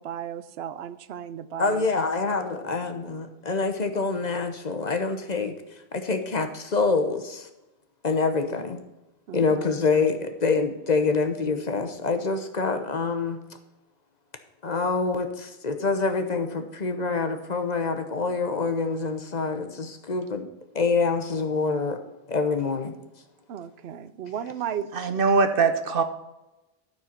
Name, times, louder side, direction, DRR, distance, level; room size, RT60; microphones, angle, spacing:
voice 1, 0.0-1.9 9.3-9.7 23.5-24.9, right 9 dB, 90° right, 14 dB, 0.8 m, -35 dB
voice 2, 1.6-5.6 5.9-7.5 8.0-8.8 9.3-13.4 14.6-20.5 20.7-22.0 22.3-22.9, left 4 dB, 45° left, 7 dB, 0.9 m, -26 dB
voice 3, 24.9-26.0, right 4 dB, 65° right, 8 dB, 1.0 m, -21 dB
12.5 x 4.4 x 5.8 m, 0.99 s
omnidirectional pair, 1.0 m